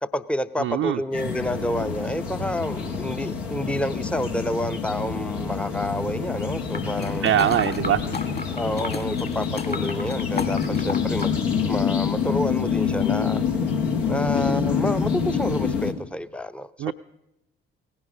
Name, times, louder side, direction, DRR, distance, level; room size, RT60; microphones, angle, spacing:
voice 1, 0.0-7.3 8.6-11.3 11.7-13.4 14.1-16.9, equal, 5° left, 14 dB, 0.7 m, -29 dB
voice 2, 0.6-1.0 7.2-8.0 16.8-16.9, right 11 dB, 50° right, 3 dB, 0.6 m, -22 dB
sound 1, 1.1-15.9, left 6 dB, 70° left, 1.6 m, -26 dB
sound 2, 6.7-11.4 11.7-11.8, left 4 dB, 35° left, 2.1 m, -34 dB
18.0 x 16.0 x 4.9 m, 0.89 s
figure-of-eight pair, 45°, 29 cm